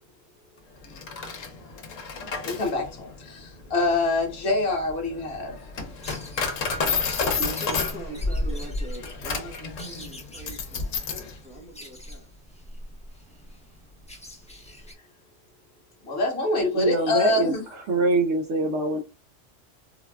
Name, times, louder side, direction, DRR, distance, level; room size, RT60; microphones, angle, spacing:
Coin (dropping), 0.8-11.3, left 4 dB, 85° left, 1.1 m, -31 dB
voice 1, 2.4-5.6 16.0-17.6, left 2 dB, 55° left, 1.2 m, -25 dB
sound 1, 5.9-14.9, left 1 dB, 10° left, 0.3 m, -37 dB
voice 2, 6.7-11.2 11.4-12.2, right 2 dB, 5° right, 0.7 m, -41 dB
voice 3, 16.7-19.0, right 2 dB, 70° right, 0.9 m, -24 dB
3.9 x 2.2 x 2.2 m
omnidirectional pair, 1.3 m